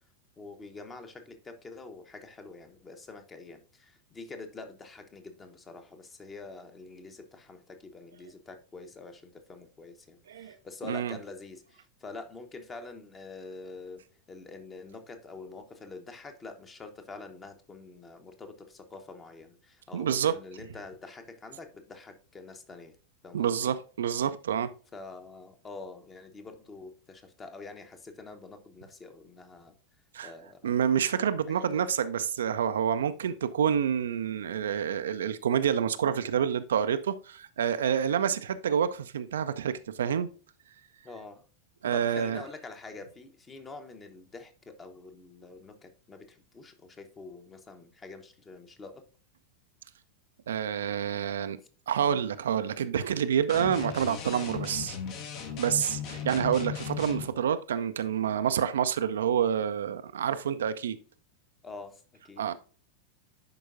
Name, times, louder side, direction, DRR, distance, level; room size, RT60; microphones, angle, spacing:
voice 1, 0.4-14.0 14.3-23.0 23.2-23.7 24.9-29.7 30.2-30.7 31.5-31.8 41.0-41.4 41.9-49.0 56.0-56.3 61.6-62.4, left 3 dB, 20° left, 1.0 m, -46 dB
voice 2, 10.8-11.2 19.9-20.4 23.3-24.7 30.1-30.3 30.6-40.3 41.8-42.4 50.5-51.6 51.9-55.0 55.5-61.0 62.4-62.5, right 8 dB, 65° right, 0.4 m, -28 dB
sound 1, 53.5-57.3, left 8 dB, 40° left, 1.0 m, -37 dB
10.5 x 4.6 x 2.5 m
figure-of-eight pair, 90°, 0 cm